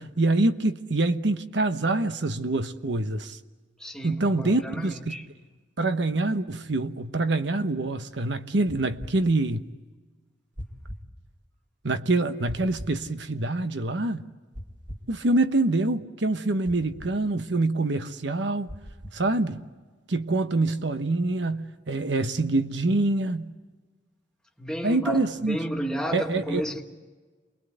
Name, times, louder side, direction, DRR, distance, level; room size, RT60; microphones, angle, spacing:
voice 1, 0.0-3.4 4.0-5.2 5.8-9.7 11.8-14.2 15.1-18.7 19.1-19.6 20.1-23.5 24.8-25.6 26.1-26.7, right 2 dB, 70° right, 1.1 m, -25 dB
voice 2, 3.8-5.3 24.6-26.8, equal, 5° left, 1.9 m, -32 dB
sound 1, 8.7-9.1 10.6-11.0 12.5-13.0 14.5-15.1 16.6-17.1 18.7-19.2, equal, 45° right, 2.5 m, -39 dB
28.5 x 21.5 x 8.0 m
head